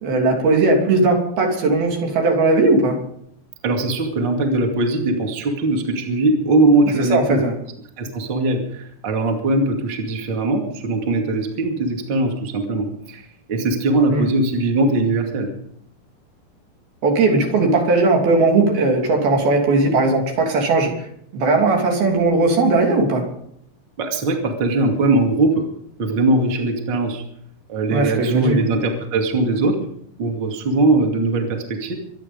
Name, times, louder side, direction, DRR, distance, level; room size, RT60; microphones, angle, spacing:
voice 1, 0.0-3.0 7.1-7.5 14.1-14.3 17.0-21.1 21.3-23.2 27.9-28.6, right 3 dB, 70° right, 1 dB, 4.9 m, -18 dB
voice 2, 3.6-7.4 8.0-15.5 24.0-25.7 26.0-27.2 27.7-29.8 30.2-31.9, right 2 dB, 35° right, 2 dB, 2.5 m, -20 dB
24.5 x 9.8 x 5.3 m, 0.69 s
omnidirectional pair, 4.6 m